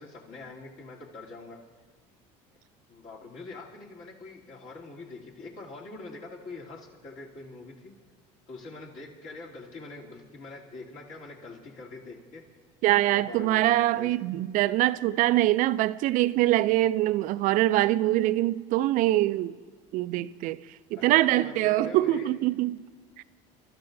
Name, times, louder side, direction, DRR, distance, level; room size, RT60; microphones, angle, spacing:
voice 1, 0.0-1.6 2.9-7.9 8.5-12.4 13.0-14.1 20.9-22.3, left 3 dB, 60° left, 2.8 m, -44 dB
voice 2, 12.8-19.5 19.9-20.6 20.9-22.8 23.2-23.3, right 15 dB, 55° right, 0.4 m, -24 dB
29.5 x 12.5 x 2.6 m
supercardioid pair, 110°, 16 cm